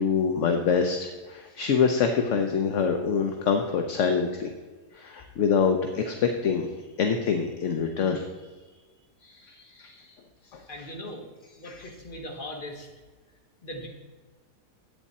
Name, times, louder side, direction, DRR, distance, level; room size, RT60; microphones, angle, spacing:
voice 1, 0.0-4.5 4.9-6.7 7.0-8.2 9.2-10.1 10.5-10.9 11.6-11.8, left 6 dB, 60° left, 5 dB, 0.9 m, -26 dB
voice 2, 10.7-11.3 11.6-12.9 13.6-13.9, left 1 dB, 30° left, 0 dB, 1.7 m, -39 dB
10.5 x 8.4 x 4.2 m, 1.3 s
omnidirectional pair, 1.8 m